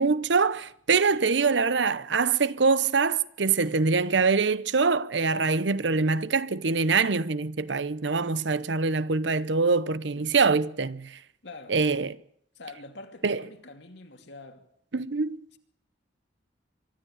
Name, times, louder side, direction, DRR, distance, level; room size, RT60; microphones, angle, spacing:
voice 1, 0.0-11.2 11.7-12.2 13.2-13.4 14.9-15.4, right 4 dB, 70° right, 0.8 m, -24 dB
voice 2, 11.4-11.8 12.5-14.7, left 3 dB, 65° left, 2.7 m, -45 dB
24.0 x 13.0 x 8.8 m
head